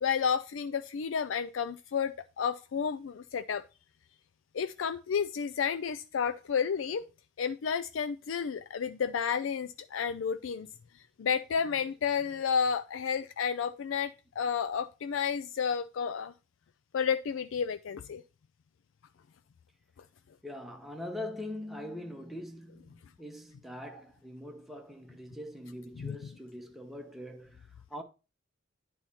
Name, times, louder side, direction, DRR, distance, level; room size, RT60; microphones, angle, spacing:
voice 1, 0.0-3.6 4.5-7.0 7.4-10.7 11.2-16.3 16.9-18.2 26.0-26.2, left 6 dB, 90° left, 0.4 m, -31 dB
voice 2, 20.4-28.0, left 1 dB, ahead, 1.1 m, -42 dB
9.7 x 4.2 x 4.2 m
head